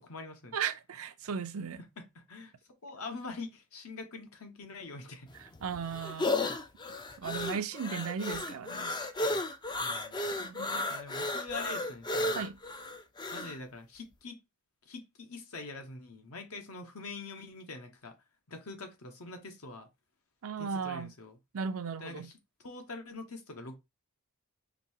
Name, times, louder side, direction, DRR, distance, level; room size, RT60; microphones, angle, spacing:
voice 1, 0.0-0.5 2.0-2.5 2.8-5.3 9.8-10.2 10.9-12.5 13.3-14.4 14.9-18.2 18.5-19.9 20.6-21.4 22.0-22.3 22.6-23.8, left 3 dB, 70° left, 0.9 m, -44 dB
voice 2, 0.5-1.8 5.6-6.3 7.2-9.0 10.4-10.9 12.3-12.6 20.4-21.1 21.5-22.3, right 6 dB, 65° right, 0.5 m, -36 dB
sound 1, 5.3-13.6, left 2 dB, 20° left, 0.4 m, -34 dB
5.1 x 2.7 x 2.7 m
head